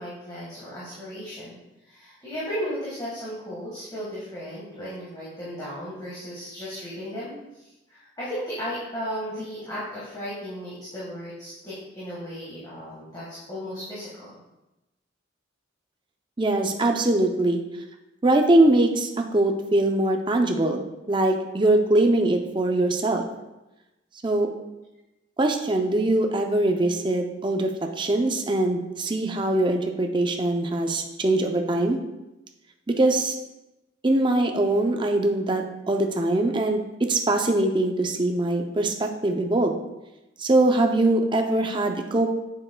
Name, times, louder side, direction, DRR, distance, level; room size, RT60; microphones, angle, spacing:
voice 1, 0.0-1.6 1.8-14.4, equal, 20° left, -9 dB, 1.5 m, -35 dB
voice 2, 16.4-17.6 18.2-23.3 24.2-24.5 25.4-32.0 32.9-33.3 34.0-39.7 40.4-42.3, right 2 dB, 25° right, 3 dB, 0.5 m, -22 dB
7.4 x 6.7 x 2.2 m, 0.99 s
head